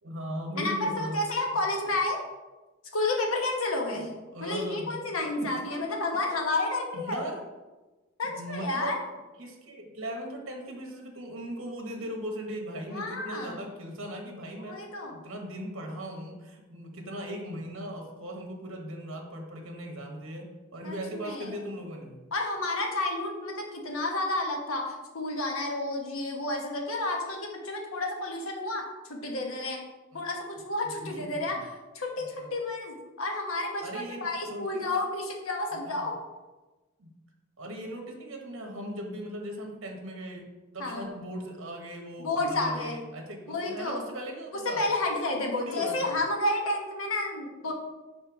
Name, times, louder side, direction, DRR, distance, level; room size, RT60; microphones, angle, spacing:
voice 1, 0.0-1.2 4.3-5.0 5.4-5.6 6.9-7.4 8.2-9.0 9.4-14.8 15.1-20.4 20.7-22.2 30.1-30.2 31.0-31.6 32.2-32.5 33.8-34.8 35.7-36.1 37.0-37.1 37.6-40.5 40.7-44.9 45.3-46.2, right 1 dB, 70° right, 2 dB, 1.2 m, -38 dB
voice 2, 0.5-2.2 2.9-4.1 4.4-7.2 8.2-9.0 12.9-13.6 14.7-15.1 20.8-21.6 22.3-28.8 29.1-29.8 30.1-31.6 31.9-36.1 40.8-41.1 42.2-43.0 43.5-44.0 44.5-47.7, left 2 dB, 90° left, 1 dB, 1.2 m, -31 dB
5.6 x 4.4 x 4.7 m, 1.2 s
head